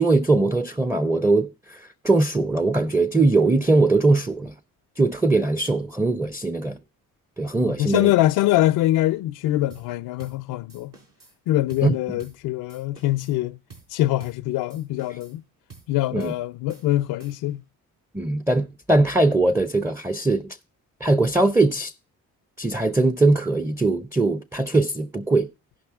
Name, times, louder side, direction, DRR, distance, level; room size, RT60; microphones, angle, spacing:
voice 1, 0.0-4.5 5.0-6.8 7.4-8.1 11.8-12.2 16.1-16.3 18.1-20.6 21.0-21.9 22.6-25.5, right 2 dB, 5° right, 0.5 m, -21 dB
voice 2, 7.6-10.9 11.5-13.6 13.9-15.4 15.9-17.6, left 15 dB, 80° left, 0.5 m, -23 dB
sound 1, 9.7-9.9 10.2-10.4 10.7-11.4 11.7-11.9 12.2-12.4 12.7-13.4 13.7-13.9 14.2-14.4 14.7-15.4 15.7-15.9 16.2-16.4 16.7-17.6, right 4 dB, 70° right, 4.4 m, -49 dB
16.5 x 5.5 x 3.5 m
supercardioid pair, 65°, 36 cm